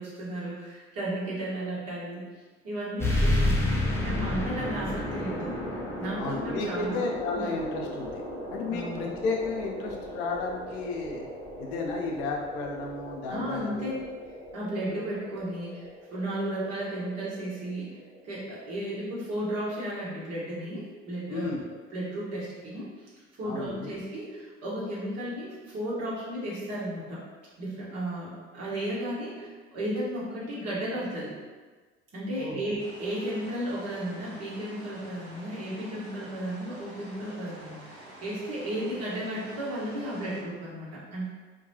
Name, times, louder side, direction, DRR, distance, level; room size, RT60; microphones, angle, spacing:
voice 1, 0.0-2.2 2.6-5.6 6.0-7.0 7.3-7.4 8.7-9.1 13.3-13.9 14.5-17.9 18.2-21.5 21.9-23.1 23.4-27.2 27.6-31.3 32.1-41.3, right 1 dB, 50° right, -7 dB, 1.2 m, -34 dB
sound 1, 3.0-18.1, left 1 dB, 10° left, 0.6 m, -33 dB
voice 2, 6.2-8.2 8.5-11.3 11.6-14.0 21.3-21.6 23.4-23.9 32.4-32.6, left 3 dB, 75° left, 1 dB, 0.5 m, -33 dB
sound 2, 32.8-40.4, right 1 dB, 90° right, 0.6 m, -48 dB
2.3 x 2.2 x 2.8 m, 1.3 s
hypercardioid pair, 55°, 33 cm